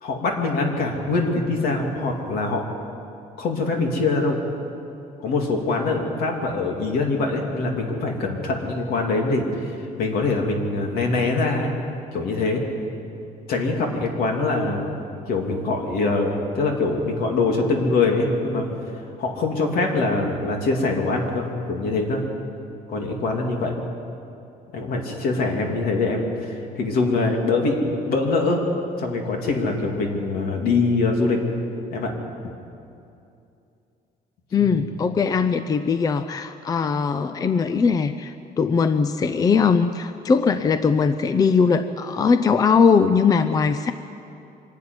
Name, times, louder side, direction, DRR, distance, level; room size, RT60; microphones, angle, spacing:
voice 1, 0.0-2.7 3.4-4.4 5.2-11.7 12.1-12.6 13.5-14.9 15.3-18.7 19.2-22.2 22.9-23.8 24.7-28.6 29.0-31.4 31.9-32.1 34.6-34.7, left 3 dB, 70° left, 1 dB, 3.1 m, -23 dB
voice 2, 34.5-43.9, left 5 dB, 25° left, 10 dB, 0.5 m, -20 dB
24.5 x 11.5 x 9.7 m, 2.7 s
cardioid pair, 175°, 16 cm